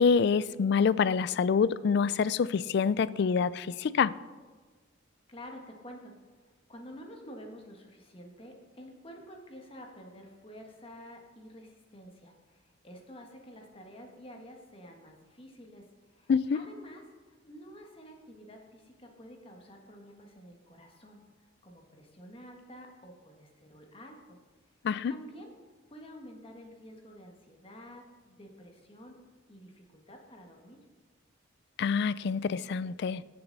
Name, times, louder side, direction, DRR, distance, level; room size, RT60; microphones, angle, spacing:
voice 1, 0.0-4.1 16.3-16.6 24.8-25.1 31.8-33.2, left 6 dB, 60° left, 18 dB, 0.3 m, -26 dB
voice 2, 5.3-6.1 6.7-21.2 21.6-24.4 25.1-25.5 25.9-29.2 29.5-30.8, equal, 30° left, 2 dB, 1.5 m, -50 dB
17.0 x 6.9 x 4.0 m, 1.4 s
head